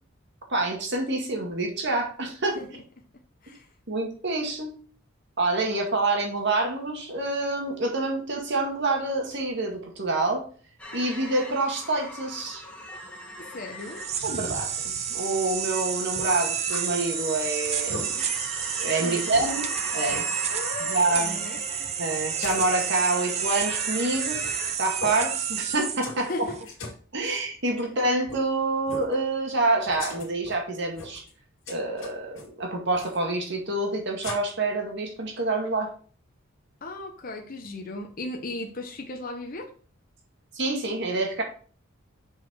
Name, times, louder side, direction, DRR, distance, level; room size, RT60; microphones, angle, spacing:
voice 1, 0.5-2.6 3.9-4.7 5.4-10.4 10.9-12.6 14.2-14.7 15.1-18.1 18.8-19.7 19.9-20.2 20.8-21.4 22.0-24.4 24.8-26.5 27.1-31.2 31.7-35.9 40.5-41.4, right 2 dB, 55° right, 2 dB, 1.9 m, -27 dB
sound 1, 10.8-24.7, left 1 dB, 5° left, 1.7 m, -40 dB
voice 2, 13.4-14.0 19.0-19.5 20.5-21.6 26.2-26.6 36.8-39.7, left 2 dB, 40° left, 2 dB, 1.0 m, -36 dB
sound 2, 13.8-26.6, right 8 dB, 30° right, 0.5 m, -30 dB
sound 3, 16.1-16.9 17.3-17.4 17.7-18.1 18.7-18.8 19.3-19.5 20.1-20.3 22.4-22.9 24.3-24.7 25.0-25.2 25.8-26.2 26.5-27.0 28.2-28.4 28.9-29.1 29.8-30.6 30.9-31.3 31.7-32.5 32.9-33.2 34.2-34.3, left 3 dB, 65° left, 2.4 m, -38 dB
6.9 x 4.7 x 4.6 m, 0.43 s
head